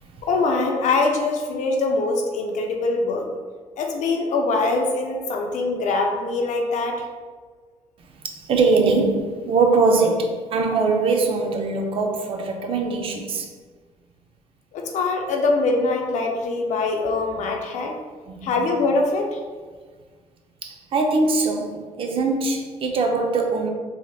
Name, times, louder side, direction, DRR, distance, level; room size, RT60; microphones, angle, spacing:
voice 1, 0.2-3.3 3.8-7.0 14.7-17.9 18.4-19.4, left 3 dB, 85° left, 2 dB, 0.5 m, -23 dB
voice 2, 8.0-13.5 18.3-18.7 20.6-23.7, right 3 dB, 50° right, 3 dB, 0.4 m, -22 dB
3.3 x 2.7 x 2.3 m, 1.5 s
wide cardioid pair, 170°, 12 cm